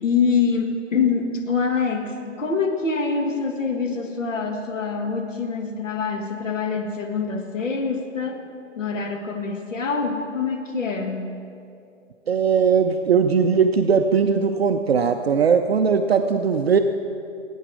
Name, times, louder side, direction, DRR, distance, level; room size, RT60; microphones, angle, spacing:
voice 1, 0.0-8.4 8.8-11.4, left 5 dB, 80° left, 3 dB, 1.9 m, -25 dB
voice 2, 12.3-16.8, right 6 dB, 55° right, 6 dB, 0.6 m, -19 dB
18.5 x 9.1 x 4.8 m, 2.5 s
hypercardioid pair, 170°, 38 cm